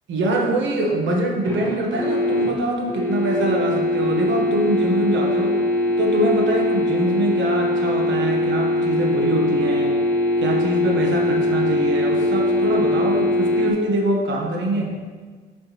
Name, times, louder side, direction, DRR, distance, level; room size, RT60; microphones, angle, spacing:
voice 1, 0.1-5.5 6.0-9.9 10.4-14.9, right 1 dB, 70° right, 0 dB, 1.3 m, -23 dB
sound 1, 1.4-13.7, left 1 dB, 10° left, 1.2 m, -21 dB
7.8 x 5.1 x 3.1 m, 1.5 s
cardioid pair, 90°, 20 cm